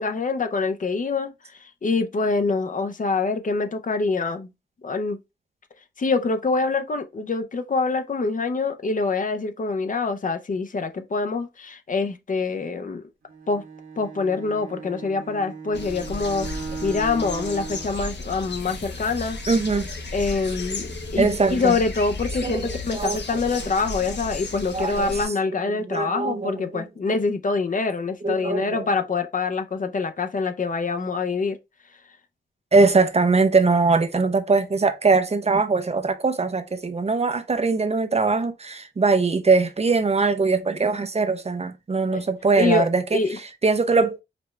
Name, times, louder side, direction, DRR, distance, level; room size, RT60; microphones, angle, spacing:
voice 1, 0.0-4.5 4.8-5.2 6.0-13.0 13.5-13.6 14.0-19.4 20.1-31.6 42.1-42.2 42.6-42.9 43.1-43.4, left 4 dB, 45° left, 0.5 m, -25 dB
Bowed string instrument, 13.3-18.0, right 5 dB, 50° right, 0.9 m, -37 dB
sound 1, 15.7-25.3, left 3 dB, 65° left, 0.8 m, -34 dB
voice 2, 19.5-19.9 21.2-21.7 22.4-23.2 24.7-25.1 25.9-26.8 28.2-28.9 32.7-44.2, right 4 dB, 35° right, 0.5 m, -21 dB
5.0 x 2.3 x 3.1 m
wide cardioid pair, 115°, 19 cm